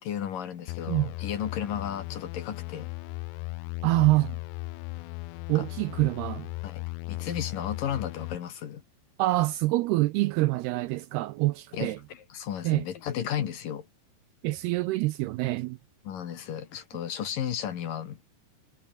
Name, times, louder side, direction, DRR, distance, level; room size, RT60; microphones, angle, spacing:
voice 1, 0.0-2.9 5.5-5.6 6.6-8.8 11.7-13.9 16.0-18.2, left 9 dB, 55° left, 3.1 m, -34 dB
sound 1, 0.7-8.4, left 22 dB, 85° left, 2.7 m, -37 dB
voice 2, 3.8-4.4 5.5-6.5 9.2-12.0 12.6-12.8 14.4-15.8, right 19 dB, 85° right, 2.4 m, -26 dB
omnidirectional pair, 5.1 m